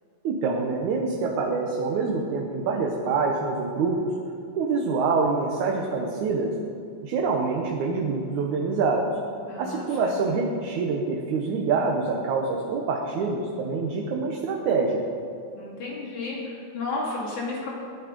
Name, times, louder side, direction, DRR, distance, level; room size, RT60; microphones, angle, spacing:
voice 1, 0.2-4.0 4.5-6.5 7.0-9.1 9.6-15.0, right 4 dB, 75° right, 0 dB, 2.5 m, -26 dB
voice 2, 9.5-10.1 15.5-17.7, left 3 dB, 80° left, -4 dB, 3.8 m, -33 dB
17.5 x 10.5 x 5.2 m, 2.5 s
omnidirectional pair, 3.4 m